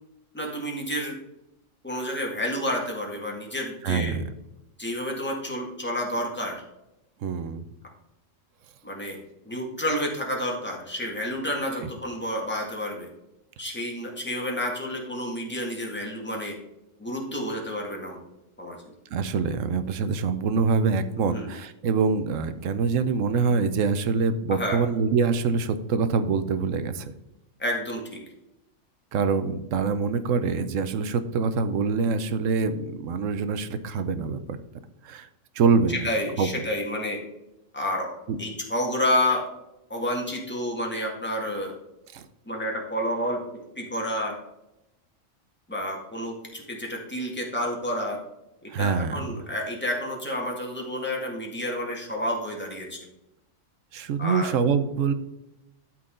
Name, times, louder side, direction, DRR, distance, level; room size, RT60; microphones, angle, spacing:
voice 1, 0.3-1.1 1.8-4.2 4.8-6.6 8.8-9.2 9.5-13.1 13.6-16.5 17.0-18.2 18.6-18.8 21.2-21.5 24.5-24.8 27.6-28.0 35.9-37.2 37.7-38.1 38.4-39.5 39.9-41.7 42.5-43.4 43.8-44.3 45.7-48.2 48.8-53.0 54.2-54.6, left 1 dB, 10° left, -1 dB, 1.8 m, -29 dB
voice 2, 3.8-4.2 7.2-7.6 11.8-11.9 19.1-27.1 29.1-34.6 35.0-35.3 35.6-36.0 36.4-36.5 38.3-38.4 42.1-42.2 48.7-49.4 53.9-55.1, right 5 dB, 75° right, 11 dB, 1.1 m, -25 dB
12.0 x 4.5 x 3.8 m, 0.90 s
omnidirectional pair, 1.4 m